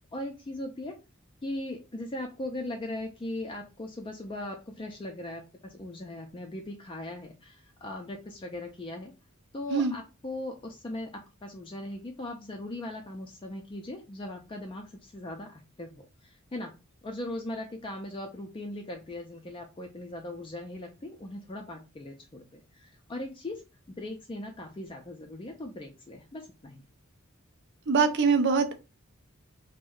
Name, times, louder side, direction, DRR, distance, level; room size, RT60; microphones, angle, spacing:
voice 1, 0.1-1.0 1.4-9.1 9.5-16.7 17.0-23.6 23.9-26.8, left 1 dB, 25° left, 2 dB, 0.4 m, -39 dB
voice 2, 27.9-28.8, right 5 dB, 55° right, 8 dB, 0.4 m, -23 dB
2.6 x 2.1 x 3.7 m, 0.28 s
head